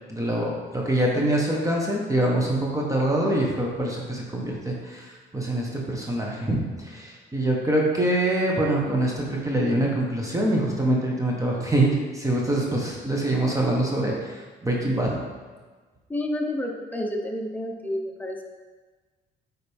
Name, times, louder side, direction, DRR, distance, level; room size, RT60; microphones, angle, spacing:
voice 1, 0.1-15.2, right 1 dB, 15° right, -2 dB, 1.2 m, -25 dB
voice 2, 16.1-18.4, left 1 dB, 10° left, 1 dB, 1.0 m, -29 dB
8.7 x 4.2 x 3.6 m, 1.4 s
cardioid pair, 90°, 20 cm